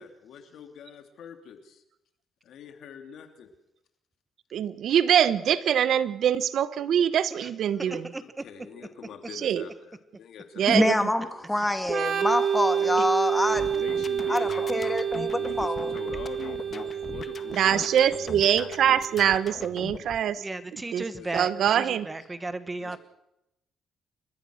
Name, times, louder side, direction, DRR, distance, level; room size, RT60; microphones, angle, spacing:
voice 1, 0.0-1.8 2.4-3.5 7.7-11.6 12.8-13.0 13.4-14.8 15.3-16.7 17.0-18.3 21.1-21.7 22.8-23.0, left 7 dB, 75° left, 6 dB, 3.1 m, -44 dB
voice 2, 4.5-8.1 9.4-9.6 10.6-11.0 17.5-20.4 20.9-21.0 21.3-22.1, right 9 dB, 70° right, 15 dB, 1.1 m, -23 dB
voice 3, 7.9-8.2 20.4-23.0, right 2 dB, 20° right, 12 dB, 1.5 m, -35 dB
voice 4, 10.7-13.6 14.3-15.9, left 1 dB, 10° left, 9 dB, 2.1 m, -26 dB
Organ, 11.8-19.4, right 8 dB, 50° right, 2.5 m, -29 dB
sound 1, 13.5-20.2, left 5 dB, 45° left, 1.5 m, -41 dB
28.5 x 14.5 x 6.5 m, 0.84 s
cardioid pair, 90°, 0 cm